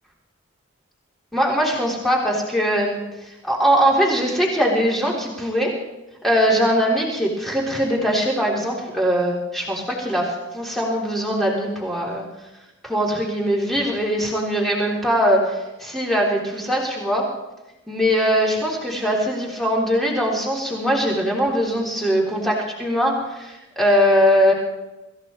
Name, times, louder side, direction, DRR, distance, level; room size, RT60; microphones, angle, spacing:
voice 1, 1.3-3.0 3.4-5.7 6.2-12.2 12.8-17.3 17.9-24.5, equal, ahead, -4 dB, 3.4 m, -21 dB
25.5 x 15.0 x 3.2 m, 1.0 s
head